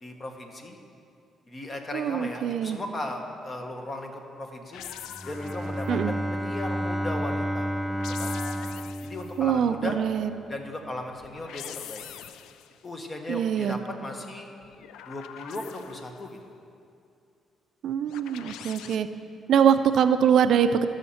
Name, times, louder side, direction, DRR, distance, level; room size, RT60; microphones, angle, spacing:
voice 1, 0.0-0.8 1.5-4.8 5.2-7.7 8.1-8.3 9.0-10.0 10.5-12.0 12.8-14.5 15.1-16.4, left 2 dB, 30° left, 3 dB, 1.2 m, -37 dB
voice 2, 1.9-2.8 5.9-6.1 9.4-10.4 13.3-13.8 17.8-19.1 19.5-20.9, right 8 dB, 70° right, 11 dB, 0.4 m, -23 dB
sound 1, 4.7-6.0 7.8-9.4 11.2-12.8 14.6-16.3 18.1-19.0, left 10 dB, 90° left, 0.3 m, -43 dB
Bowed string instrument, 5.1-10.0, equal, ahead, 0.4 m, -31 dB
13.5 x 6.4 x 4.2 m, 2.5 s
cardioid pair, 90°, 0 cm